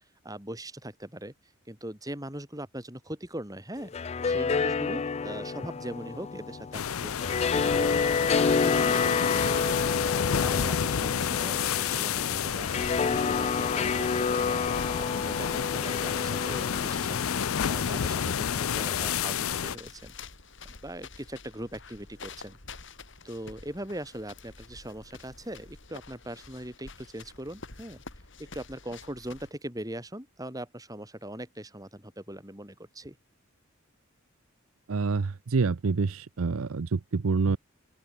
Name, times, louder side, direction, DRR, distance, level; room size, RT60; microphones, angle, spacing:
voice 1, 0.2-1.3 1.7-3.9 4.2-8.2 8.5-9.9 10.4-14.6 15.0-17.3 17.6-20.1 20.8-22.6 23.2-28.0 28.4-33.2, right 1 dB, 15° right, 5.0 m, -40 dB
sound 1, 3.8-19.0, left 5 dB, 30° left, 0.3 m, -29 dB
sound 2, 6.7-19.8, left 8 dB, 80° left, 0.6 m, -30 dB
sound 3, 12.6-29.5, left 4 dB, 60° left, 3.8 m, -48 dB
voice 2, 34.9-37.6, right 4 dB, 75° right, 0.6 m, -27 dB
open air
head